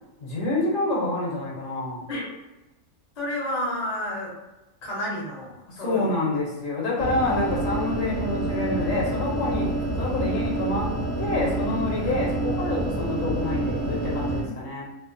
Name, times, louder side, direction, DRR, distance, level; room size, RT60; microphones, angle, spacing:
voice 1, 0.2-2.0 5.7-9.7 10.0-10.9 11.2-14.9, left 2 dB, 65° left, -4 dB, 1.1 m, -27 dB
voice 2, 3.2-4.4 4.8-6.1 6.8-6.9 12.0-12.2, left 1 dB, 35° left, -5 dB, 0.6 m, -31 dB
sound 1, 7.0-14.4, right 2 dB, 55° right, 0.7 m, -27 dB
2.8 x 2.1 x 2.5 m, 1.0 s
omnidirectional pair, 1.6 m